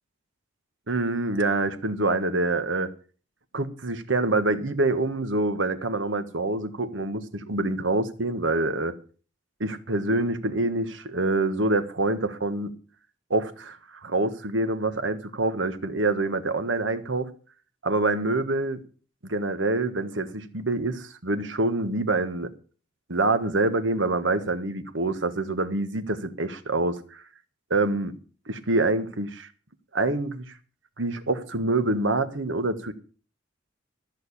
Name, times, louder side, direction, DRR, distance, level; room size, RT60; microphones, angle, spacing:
voice 1, 0.9-2.9 3.5-8.9 9.6-12.7 13.3-17.3 17.8-18.8 19.2-22.5 23.1-27.2 27.7-28.2 28.5-29.5 29.9-30.4 31.0-32.9, right 2 dB, 80° right, 1.5 m, -26 dB
14.0 x 6.6 x 8.4 m
head